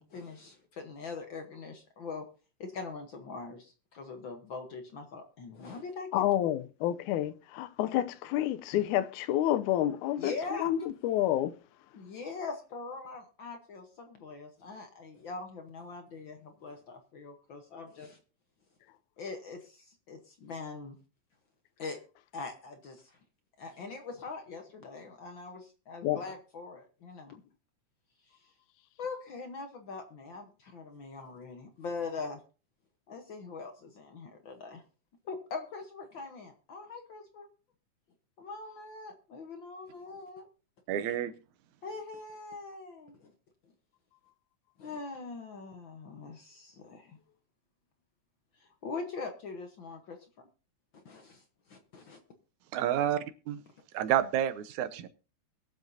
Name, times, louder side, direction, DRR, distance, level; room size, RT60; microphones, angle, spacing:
voice 1, 0.0-2.2 2.6-6.2 10.2-10.7 11.9-18.2 19.2-20.9 21.8-22.0 22.3-23.1 23.6-27.4 29.0-32.4 33.1-34.8 35.2-37.5 38.4-40.5 41.8-43.3 44.8-47.2 48.6-50.2 51.0-51.4 51.7-52.2, left 4 dB, 60° left, 1.3 m, -42 dB
voice 2, 6.1-11.6 26.0-26.2, left 12 dB, 85° left, 2.1 m, -29 dB
voice 3, 40.9-41.3 52.7-53.6 53.9-55.1, right 10 dB, 80° right, 2.2 m, -29 dB
22.0 x 7.4 x 2.7 m
omnidirectional pair, 3.4 m